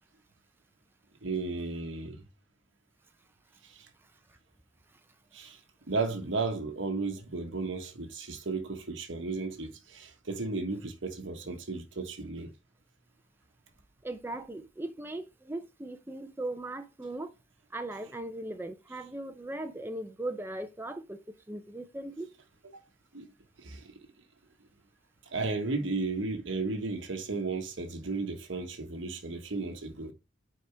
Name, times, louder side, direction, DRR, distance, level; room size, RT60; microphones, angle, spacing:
voice 1, 1.2-2.2 3.6-3.9 5.3-5.6 5.9-12.5 23.1-23.3 23.6-23.9 25.3-30.1, right 3 dB, 70° right, 1.2 m, -34 dB
voice 2, 14.0-17.3 17.7-21.2 21.5-22.3, right 1 dB, 10° right, 0.5 m, -38 dB
6.4 x 4.8 x 3.4 m
head